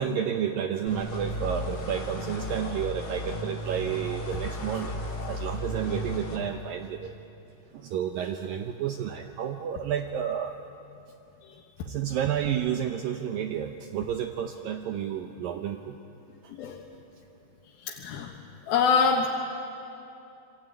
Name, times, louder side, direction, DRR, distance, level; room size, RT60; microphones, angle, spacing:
voice 1, 0.0-7.1 7.7-10.5 11.9-16.0, right 9 dB, 75° right, 6 dB, 2.1 m, -31 dB
sound 1, 0.9-6.4, left 1 dB, 40° left, 3.0 m, -34 dB
voice 2, 17.8-18.4 18.7-19.3, left 5 dB, 70° left, 1 dB, 2.8 m, -25 dB
27.0 x 24.0 x 9.1 m, 2.8 s
omnidirectional pair, 5.0 m